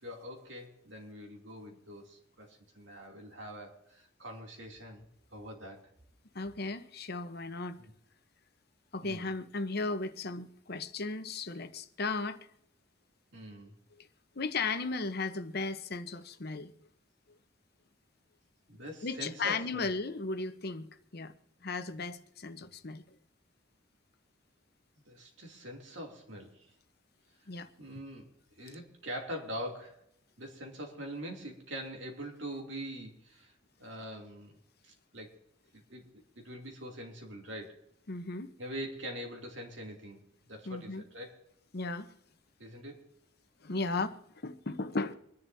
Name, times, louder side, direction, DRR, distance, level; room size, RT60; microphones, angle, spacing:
voice 1, 0.0-5.0 5.3-5.8 7.8-7.9 9.0-9.3 13.3-13.7 18.7-19.9 25.1-26.7 27.8-28.3 28.6-30.0 30.4-33.5 33.8-34.6 34.8-35.4 35.7-37.8 38.6-41.3 42.6-43.0, equal, 65° right, 2.8 m, -43 dB
voice 2, 6.3-7.8 8.9-12.5 14.0-14.1 14.3-16.7 19.0-21.3 21.6-23.0 27.5-28.0 38.1-38.5 40.7-41.0 41.7-42.1 43.6-45.1, left 3 dB, 55° left, 0.9 m, -36 dB
25.5 x 10.5 x 2.7 m
head